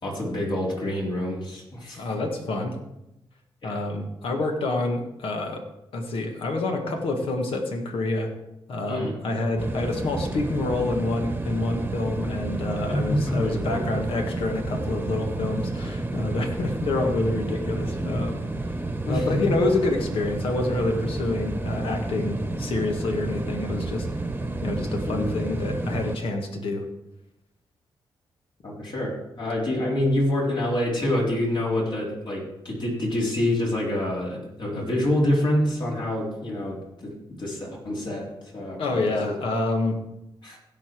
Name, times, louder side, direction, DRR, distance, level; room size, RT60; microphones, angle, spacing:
voice 1, 0.0-2.0 3.6-3.8 8.9-9.1 12.9-13.9 19.0-19.4 25.1-25.3 28.6-36.8 37.0-38.3 38.5-39.4 40.4-40.6, left 1 dB, 55° left, -3 dB, 4.0 m, -27 dB
voice 2, 2.0-2.8 3.6-5.6 5.9-8.3 8.7-18.4 19.1-24.1 24.6-26.9 38.8-40.0, left 2 dB, 80° left, 3 dB, 1.8 m, -27 dB
sound 1, 9.6-26.2, right 2 dB, 20° right, 1.1 m, -31 dB
16.0 x 5.8 x 4.7 m, 0.89 s
cardioid pair, 80°, 9 cm